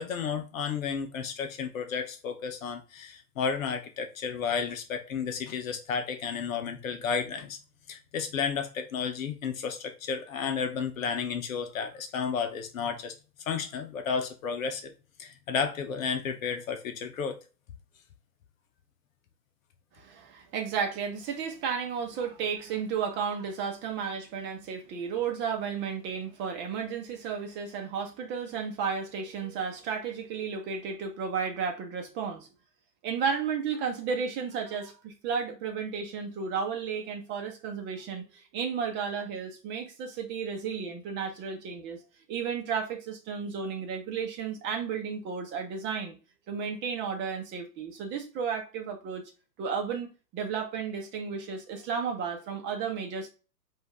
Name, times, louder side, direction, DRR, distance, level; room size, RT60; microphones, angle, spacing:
voice 1, 0.0-7.6 7.9-13.1 13.5-14.9 15.2-17.4, left 6 dB, 50° left, 0.9 m, -32 dB
voice 2, 19.9-32.5 33.0-42.0 42.3-46.2 46.5-49.2 49.6-53.3, right 6 dB, 20° right, 1.0 m, -33 dB
5.1 x 2.7 x 3.5 m
hypercardioid pair, 125°, 50 cm